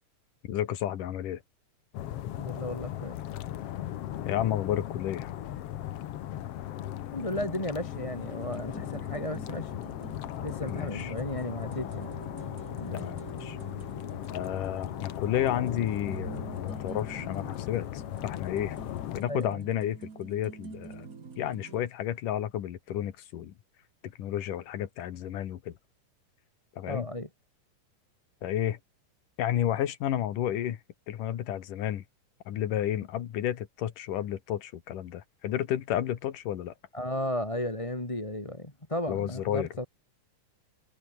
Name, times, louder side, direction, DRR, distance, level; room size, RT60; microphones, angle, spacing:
voice 1, 0.4-1.4 4.3-5.4 10.6-11.1 12.9-13.6 14.3-18.8 19.1-21.1 21.4-23.5 24.0-25.8 26.8-27.1 28.4-28.8 29.4-30.8 31.1-32.0 32.5-36.7 39.1-39.9, left 11 dB, 80° left, 3.2 m, -31 dB
sound 1, 1.9-19.2, left 12 dB, 65° left, 1.7 m, -37 dB
voice 2, 2.3-3.1 7.1-9.8 10.4-12.1 12.8-13.1 19.3-19.6 26.9-27.3 36.9-39.9, left 1 dB, 10° left, 2.6 m, -34 dB
sound 2, 7.8-21.8, right 5 dB, 30° right, 1.9 m, -46 dB
omnidirectional pair, 3.7 m